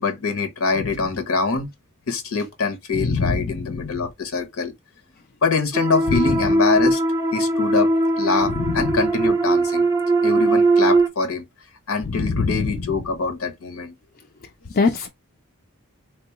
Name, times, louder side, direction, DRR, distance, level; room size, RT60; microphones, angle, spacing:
voice 1, 0.0-1.7 2.1-4.7 5.4-7.0 7.3-7.9 8.2-9.9 10.2-11.4 11.9-13.9, left 4 dB, 70° left, 0.8 m, -24 dB
voice 2, 3.0-3.4 12.4-12.5 14.8-15.1, left 4 dB, 45° left, 0.5 m, -20 dB
sound 1, 5.7-11.1, right 2 dB, 15° right, 0.6 m, -20 dB
4.0 x 2.2 x 2.9 m
head